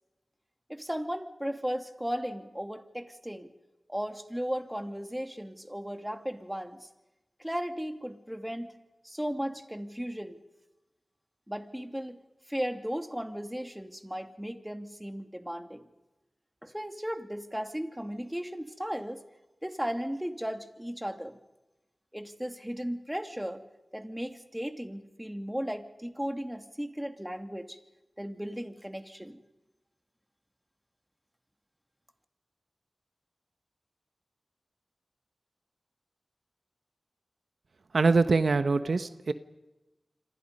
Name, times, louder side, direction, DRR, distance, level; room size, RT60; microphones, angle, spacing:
voice 1, 0.7-3.5 3.9-6.9 7.4-8.8 9.0-10.4 11.5-12.2 12.5-15.9 16.6-19.2 19.6-21.4 22.1-23.6 23.9-27.8 28.2-29.4, equal, 5° right, 6 dB, 2.5 m, -36 dB
voice 2, 37.9-39.3, right 3 dB, 75° right, 10 dB, 1.0 m, -24 dB
28.0 x 26.0 x 5.5 m, 1.0 s
cardioid pair, 40°, 0 cm